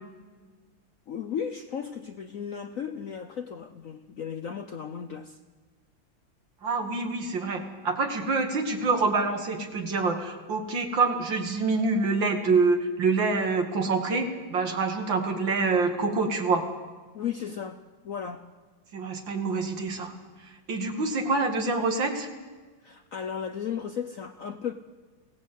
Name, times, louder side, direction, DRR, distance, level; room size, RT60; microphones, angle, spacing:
voice 1, 1.1-5.4 17.1-18.5 22.8-24.7, left 7 dB, 60° left, 8 dB, 0.9 m, -35 dB
voice 2, 6.6-16.6 18.9-20.1 20.4-22.3, right 3 dB, 65° right, 5 dB, 2.8 m, -26 dB
23.5 x 17.5 x 8.2 m, 1.4 s
omnidirectional pair, 2.2 m